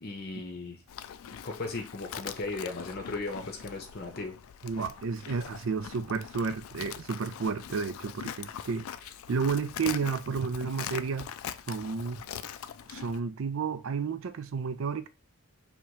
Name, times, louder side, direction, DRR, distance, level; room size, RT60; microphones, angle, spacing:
voice 1, 0.0-0.8 1.4-4.4, left 3 dB, 45° left, 0.7 m, -37 dB
Livestock farm animals working animals, 0.9-13.2, left 9 dB, 70° left, 0.3 m, -42 dB
voice 2, 4.6-8.9 9.3-11.3 11.7-12.2 12.9-15.1, right 5 dB, 65° right, 0.4 m, -31 dB
3.0 x 2.9 x 4.5 m
head